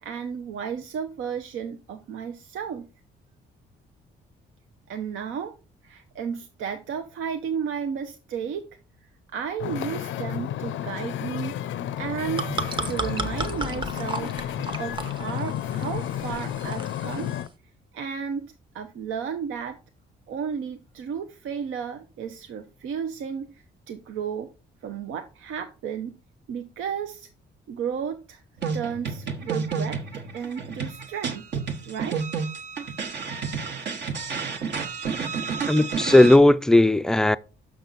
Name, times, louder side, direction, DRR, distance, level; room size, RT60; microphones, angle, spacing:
voice 1, 0.0-2.9 4.9-5.5 5.8-8.7 9.3-11.6 12.0-12.5 12.9-14.4 14.8-17.3 17.9-19.8 20.3-24.5 24.8-26.2 26.5-27.3 27.7-28.4 28.7-30.0 30.3-31.4 31.9-32.2, right 7 dB, 75° right, 0.7 m, -33 dB
Wind / Ocean, 9.6-17.5, left 11 dB, 75° left, 0.5 m, -32 dB
sound 1, 12.0-17.5, right 3 dB, 25° right, 0.9 m, -34 dB
sound 2, 28.6-36.4, right 5 dB, 60° right, 1.2 m, -30 dB
voice 2, 35.7-37.4, left 1 dB, 5° left, 0.3 m, -16 dB
6.2 x 5.9 x 3.9 m
cardioid pair, 90°, 20 cm